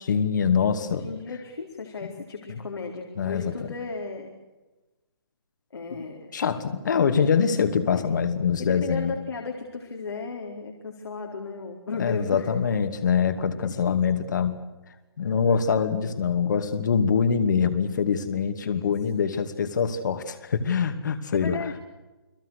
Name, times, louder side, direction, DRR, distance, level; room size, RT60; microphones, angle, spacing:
voice 1, 0.1-1.0 2.5-2.6 3.2-3.5 6.3-9.1 12.0-14.6 15.2-21.6, left 6 dB, 45° left, 9 dB, 2.6 m, -24 dB
voice 2, 1.0-4.4 5.7-6.3 7.9-8.0 8.6-12.5 13.5-14.0 18.6-19.2 21.3-21.8, left 4 dB, 85° left, 0 dB, 4.5 m, -35 dB
30.0 x 20.5 x 6.6 m, 1.1 s
hypercardioid pair, 170°, 13 cm